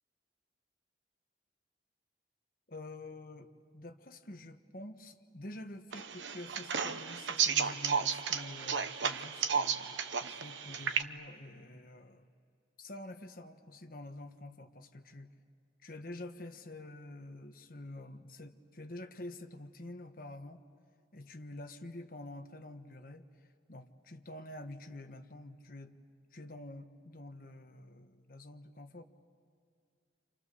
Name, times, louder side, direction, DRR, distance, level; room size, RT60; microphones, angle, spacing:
voice 1, 2.7-12.3 12.8-15.3 15.8-20.6 21.1-23.3 23.7-26.0 26.3-29.0, left 1 dB, 50° left, 6 dB, 1.4 m, -48 dB
sound 1, 5.9-11.0, right 6 dB, 80° right, 1.1 m, -33 dB
30.0 x 27.0 x 6.9 m, 2.2 s
head